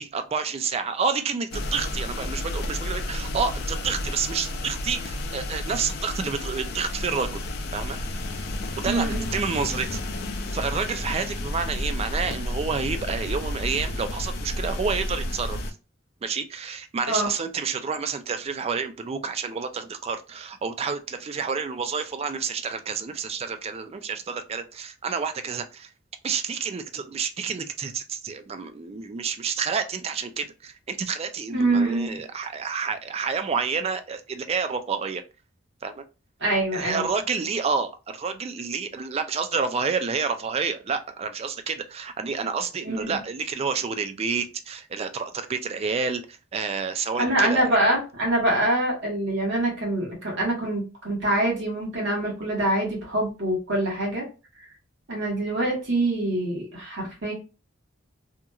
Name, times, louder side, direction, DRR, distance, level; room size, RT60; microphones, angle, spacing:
voice 1, 0.0-7.4 7.7-8.0 8.8-10.0 10.5-15.6 16.2-25.9 26.2-35.2 35.8-36.0 36.7-47.7, right 5 dB, 30° right, 0.3 m, -29 dB
sound 1, 1.5-15.7, left 1 dB, 50° left, 0.4 m, -31 dB
voice 2, 8.8-9.3 17.0-17.3 31.5-32.1 36.4-37.1 42.8-43.2 47.2-54.2 55.1-57.3, right 1 dB, 60° right, 1.2 m, -25 dB
2.9 x 2.5 x 2.3 m
head